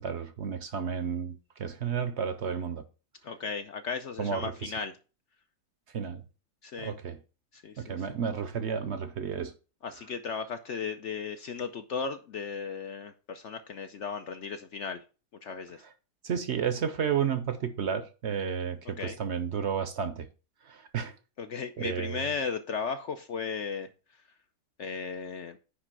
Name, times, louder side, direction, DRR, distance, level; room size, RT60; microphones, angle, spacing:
voice 1, 0.0-2.8 4.2-4.7 5.9-6.2 6.8-7.2 7.8-9.6 16.2-20.3 20.6-21.1 21.8-22.3, right 7 dB, 55° right, 0.9 m, -32 dB
voice 2, 3.2-4.9 6.6-6.9 7.5-8.0 9.8-15.0 15.4-15.8 18.8-19.2 21.4-24.2 24.8-25.6, left 5 dB, 60° left, 0.9 m, -36 dB
9.8 x 3.3 x 6.1 m
omnidirectional pair, 1.6 m